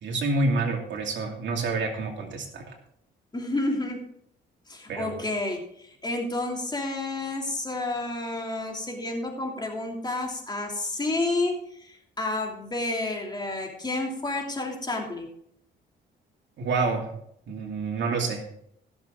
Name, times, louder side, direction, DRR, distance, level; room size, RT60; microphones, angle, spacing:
voice 1, 0.0-2.7 4.9-5.2 16.6-17.1 17.5-18.4, right 3 dB, 70° right, 2 dB, 2.7 m, -28 dB
voice 2, 3.3-4.0 4.7-15.3, left 2 dB, 20° left, 0 dB, 2.9 m, -30 dB
16.5 x 7.2 x 3.8 m, 0.69 s
cardioid pair, 90°, 20 cm